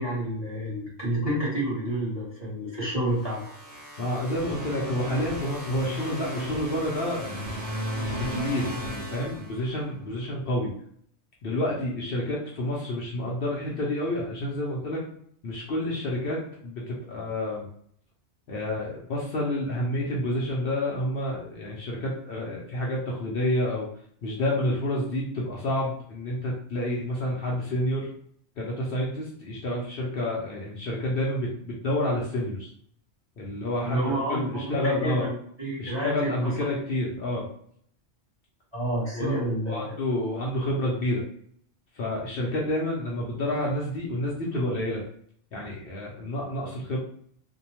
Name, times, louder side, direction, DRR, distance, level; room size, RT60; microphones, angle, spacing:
voice 1, 0.0-3.4 33.8-36.7 38.7-39.9, right 1 dB, 25° right, -7 dB, 0.9 m, -29 dB
sound 1, 3.1-10.0, equal, 85° right, 1.1 m, -35 dB
voice 2, 4.0-7.6 8.3-10.7 11.4-15.0 15.4-17.7 18.5-23.9 24.2-28.1 28.6-32.7 33.4-35.3 35.8-37.5 39.1-41.2 41.9-45.0 45.5-47.0, left 1 dB, 60° left, -3 dB, 0.7 m, -29 dB
2.6 x 2.1 x 2.9 m, 0.64 s
omnidirectional pair, 1.2 m